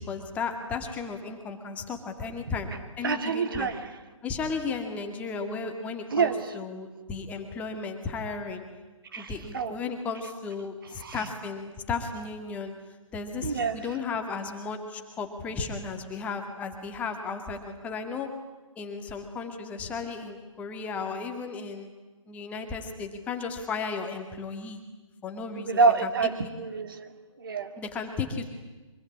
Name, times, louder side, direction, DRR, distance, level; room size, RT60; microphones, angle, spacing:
voice 1, 0.0-3.7 4.2-8.6 9.2-12.7 13.1-18.3 18.8-21.9 22.3-24.8 25.2-26.1 26.4-26.5 27.8-28.5, left 4 dB, 10° left, 5 dB, 2.2 m, -34 dB
voice 2, 3.0-3.9 6.1-6.4 9.1-9.7 11.0-11.3 13.4-13.8 25.7-27.7, right 4 dB, 40° right, 9 dB, 2.6 m, -27 dB
25.0 x 23.5 x 9.7 m, 1.2 s
figure-of-eight pair, 145°, 17 cm